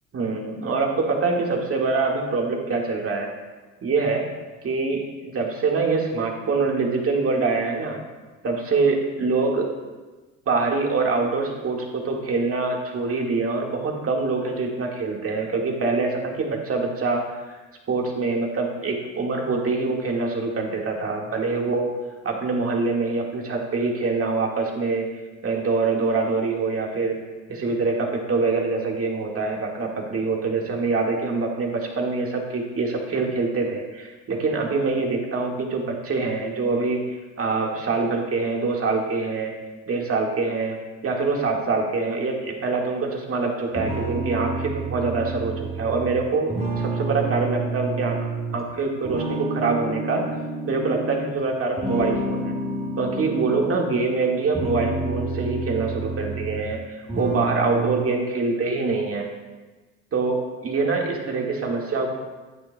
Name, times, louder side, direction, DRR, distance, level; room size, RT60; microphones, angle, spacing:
voice 1, 0.1-3.3 3.8-4.3 4.6-8.0 8.4-9.7 10.5-17.6 17.9-21.9 22.2-25.1 25.4-27.2 27.5-39.5 39.9-48.2 48.5-50.4 50.7-52.6 53.0-59.3 60.1-62.1, right 3 dB, 35° right, 0 dB, 1.8 m, -25 dB
sound 1, 43.8-48.7 49.0-51.3 51.8-53.9 54.4-56.8 57.1-58.0, right 2 dB, 15° right, 1.6 m, -29 dB
9.3 x 8.7 x 2.2 m, 1.3 s
hypercardioid pair, 75°, 38 cm